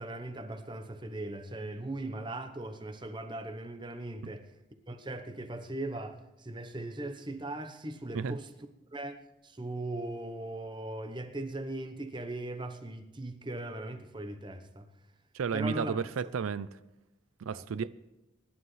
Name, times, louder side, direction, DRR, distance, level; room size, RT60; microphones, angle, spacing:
voice 1, 0.0-4.4 4.9-8.5 8.9-9.2 9.4-14.9 15.5-16.0 17.5-17.6, right 1 dB, 20° right, 0.9 m, -39 dB
voice 2, 15.3-16.7 17.4-17.9, right 6 dB, 90° right, 0.4 m, -32 dB
24.5 x 11.0 x 3.2 m
head